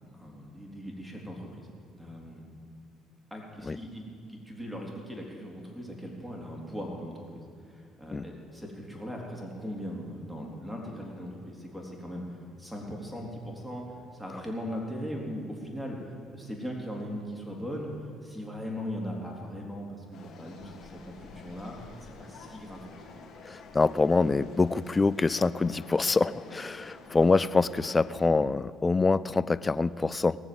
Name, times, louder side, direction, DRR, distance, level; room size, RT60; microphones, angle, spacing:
voice 1, 0.1-2.4 3.3-4.0 4.3-13.8 14.1-21.8 22.0-23.0, equal, 5° right, -1 dB, 3.9 m, -39 dB
sound 1, 20.1-28.3, left 4 dB, 45° left, 2.6 m, -49 dB
voice 2, 23.5-30.4, left 3 dB, 25° left, 17 dB, 0.4 m, -25 dB
18.5 x 7.3 x 8.0 m, 2.3 s
hypercardioid pair, 55°, 0 cm